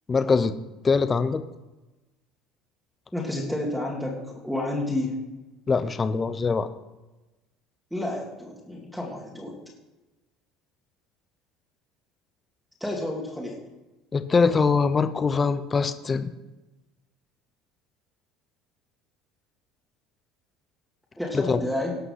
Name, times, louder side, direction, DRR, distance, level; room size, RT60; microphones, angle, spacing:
voice 1, 0.1-0.5 0.8-1.4 5.7-6.7 14.1-16.3 21.3-21.6, left 4 dB, 20° left, 11 dB, 0.6 m, -23 dB
voice 2, 3.1-5.2 7.9-9.6 12.8-13.6 21.2-21.9, left 1 dB, ahead, -4 dB, 2.1 m, -30 dB
17.5 x 5.8 x 5.6 m, 1.1 s
cardioid pair, 130°, 0 cm